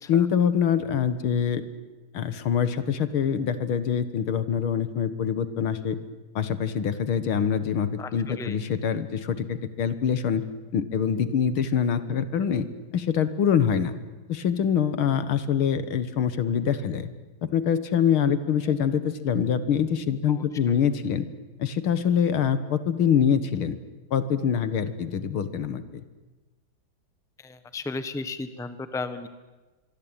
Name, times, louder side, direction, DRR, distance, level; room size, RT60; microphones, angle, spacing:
voice 1, 0.1-1.6 2.1-6.0 6.4-10.4 10.7-12.7 12.9-14.0 14.3-17.1 17.4-21.3 21.6-23.8 24.1-26.0, left 8 dB, 85° left, 12 dB, 2.3 m, -25 dB
voice 2, 8.0-8.6 20.3-20.8 27.4-29.3, left 3 dB, ahead, 11 dB, 0.9 m, -35 dB
24.5 x 23.5 x 8.9 m, 1.2 s
omnidirectional pair, 2.3 m